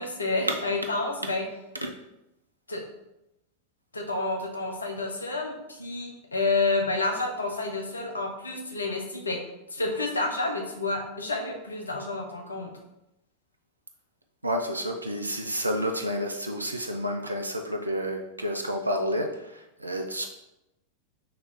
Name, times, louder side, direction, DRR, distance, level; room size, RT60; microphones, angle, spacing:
voice 1, 0.0-1.4 2.7-2.8 3.9-9.4 9.7-12.7, left 3 dB, 75° left, 2 dB, 0.6 m, -29 dB
voice 2, 14.4-20.3, equal, 85° right, 3 dB, 0.3 m, -30 dB
3.5 x 3.0 x 3.4 m, 0.91 s
figure-of-eight pair, 90°, 0 cm